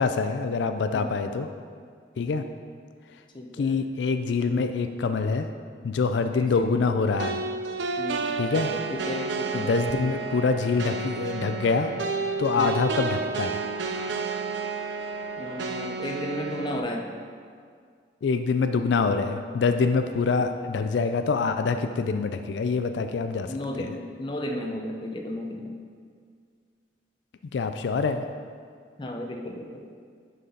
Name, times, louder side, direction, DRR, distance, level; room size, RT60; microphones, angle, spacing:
voice 1, 0.0-1.5 2.2-2.4 3.6-5.5 5.8-7.4 8.4-8.7 9.5-11.9 12.4-13.6 18.2-23.5 23.8-23.9 27.5-28.2, left 4 dB, 85° left, 8 dB, 0.4 m, -25 dB
voice 2, 3.3-3.8 6.3-7.1 8.0-8.3 8.9-9.7 12.6-12.9 15.4-17.1 20.3-20.4 23.5-25.7 29.0-29.8, left 1 dB, 25° left, 2 dB, 0.6 m, -34 dB
sound 1, 7.2-16.8, right 4 dB, 85° right, 0.5 m, -31 dB
10.5 x 4.1 x 3.8 m, 2.1 s
head